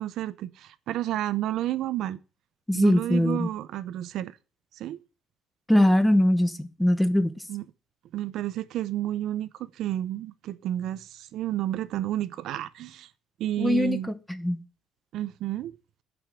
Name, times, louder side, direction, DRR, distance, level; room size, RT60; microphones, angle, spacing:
voice 1, 0.0-2.2 2.7-4.4 4.7-5.0 7.5-7.6 8.1-13.1 13.4-14.1 15.1-15.7, right 13 dB, 65° right, 0.6 m, -31 dB
voice 2, 2.7-3.5 5.7-7.3 13.6-14.0 14.3-14.6, left 1 dB, 5° left, 0.9 m, -21 dB
9.0 x 5.1 x 7.3 m
cardioid pair, 150°, 0 cm